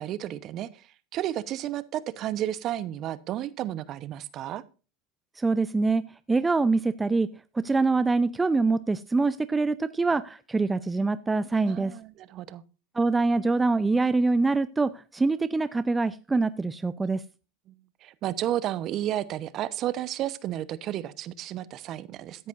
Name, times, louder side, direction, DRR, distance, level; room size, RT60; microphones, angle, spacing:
voice 1, 0.0-4.6 11.6-12.6 17.7-22.5, right 12 dB, 45° right, 17 dB, 0.9 m, -32 dB
voice 2, 5.4-6.0 6.3-7.3 7.5-11.9 12.9-17.2, right 3 dB, 15° right, 15 dB, 0.5 m, -24 dB
14.5 x 10.0 x 2.6 m, 0.34 s
hypercardioid pair, 95°, 0 cm